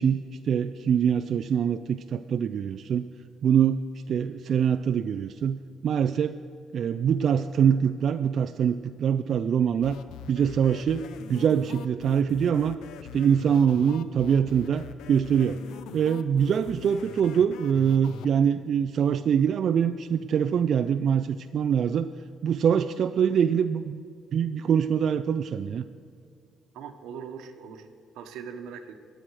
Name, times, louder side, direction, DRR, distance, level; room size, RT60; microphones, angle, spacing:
voice 1, 0.0-3.0 3.4-6.4 6.7-10.0 10.3-11.0 11.3-12.8 13.1-15.6 15.9-22.1 22.4-24.0 24.3-25.8, right 8 dB, 60° right, 10 dB, 0.4 m, -24 dB
sound 1, 9.8-18.3, left 9 dB, 90° left, 0.6 m, -42 dB
voice 2, 26.7-27.9 28.1-28.9, right 7 dB, 90° right, 7 dB, 1.1 m, -40 dB
22.0 x 7.7 x 4.8 m, 2.3 s
cardioid pair, 90°, 0 cm